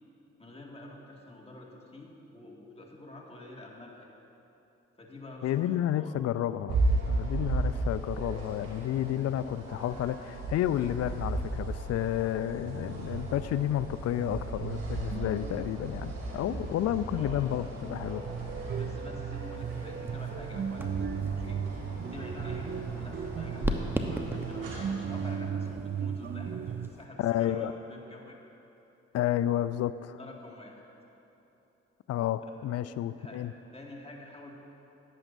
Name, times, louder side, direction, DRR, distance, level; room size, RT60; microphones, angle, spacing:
voice 1, 0.4-4.1 5.0-6.1 17.1-17.5 18.7-21.0 21.3-21.6 22.1-28.4 30.2-30.8 33.1-33.4 33.7-34.5, left 2 dB, 20° left, -2 dB, 2.1 m, -48 dB
voice 2, 5.4-6.8 7.1-18.2 27.2-27.7 29.1-30.2 32.1-33.5, left 12 dB, 55° left, 14 dB, 0.4 m, -31 dB
sound 1, 6.7-25.3, right 2 dB, 85° right, 2.4 m, -36 dB
sound 2, 12.6-26.9, right 7 dB, 35° right, 0.4 m, -37 dB
sound 3, 19.3-27.1, equal, 5° right, 1.0 m, -39 dB
14.0 x 10.0 x 2.7 m, 3.0 s
hypercardioid pair, 45°, 31 cm